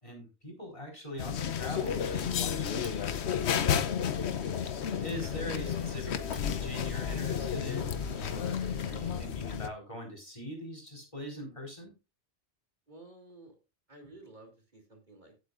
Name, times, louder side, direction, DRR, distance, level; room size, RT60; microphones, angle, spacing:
voice 1, 0.0-3.7 5.0-12.0, left 1 dB, 30° left, 1 dB, 4.5 m, -42 dB
sound 1, 1.2-9.7, left 8 dB, 90° left, 1.0 m, -32 dB
Camera, 1.7-9.2, right 3 dB, 85° right, 1.7 m, -55 dB
voice 2, 12.9-13.6 13.9-15.4, right 2 dB, 45° right, 3 dB, 3.0 m, -52 dB
15.0 x 8.4 x 2.5 m, 0.26 s
omnidirectional pair, 1.1 m